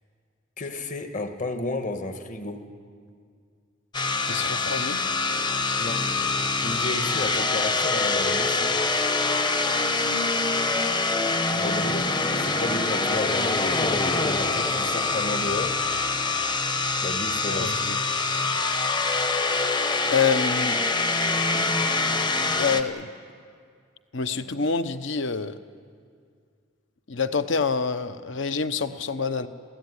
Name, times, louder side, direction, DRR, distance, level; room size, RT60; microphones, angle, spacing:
voice 1, 0.6-2.7 5.8-6.1 6.6-8.7 11.6-12.1 12.4-15.8 17.0-17.9, left 2 dB, 40° left, 7 dB, 1.6 m, -32 dB
sound 1, 3.9-22.8, left 3 dB, 20° left, 0.9 m, -25 dB
voice 2, 4.3-5.0 11.5-11.6 17.5-18.0 20.1-20.8 21.5-22.0 22.4-23.1 24.1-25.6 27.1-29.5, left 5 dB, 65° left, 11 dB, 1.0 m, -27 dB
29.0 x 15.5 x 9.7 m, 2.2 s
head